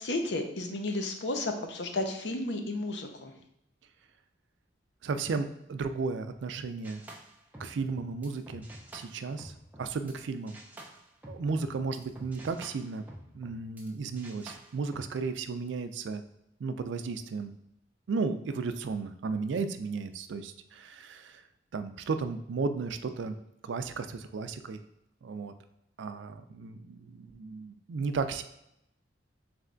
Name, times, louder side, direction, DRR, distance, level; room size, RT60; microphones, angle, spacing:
voice 1, 0.0-3.3, left 2 dB, 70° left, 5 dB, 0.6 m, -33 dB
voice 2, 5.0-7.0 7.6-8.7 8.9-9.5 9.8-10.6 11.3-13.0 13.3-16.2 16.6-17.5 18.1-21.4 21.7-23.4 23.6-24.8 25.2-25.5 26.0-28.4, right 4 dB, 80° right, 9 dB, 0.4 m, -34 dB
sound 1, 6.8-10.2 10.5-13.9 14.2-15.1, right 1 dB, 10° right, 0.5 m, -49 dB
3.4 x 3.1 x 3.8 m, 0.80 s
head